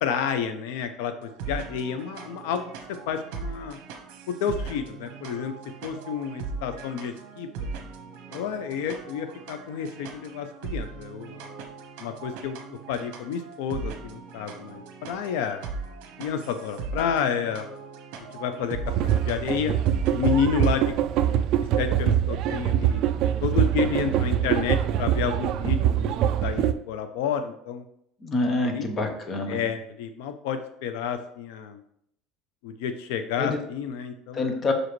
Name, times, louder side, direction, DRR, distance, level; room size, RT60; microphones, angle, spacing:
voice 1, 0.0-2.7 3.1-3.8 4.3-5.5 5.8-7.5 8.3-11.5 12.0-15.7 16.2-17.7 18.3-19.7 20.1-20.9 21.2-21.4 21.8-23.0 23.4-26.1 26.4-27.8 28.7-28.8 29.5-31.8 32.6-34.5, left 7 dB, 75° left, 9 dB, 0.5 m, -30 dB
sound 1, 1.2-20.9, right 4 dB, 65° right, 1.0 m, -39 dB
sound 2, 18.9-26.7, right 10 dB, 45° right, 0.3 m, -24 dB
voice 2, 28.2-29.6 33.4-33.6 34.3-34.7, left 2 dB, 20° left, 5 dB, 0.8 m, -26 dB
6.2 x 4.9 x 3.1 m, 0.71 s
cardioid pair, 175°, 0 cm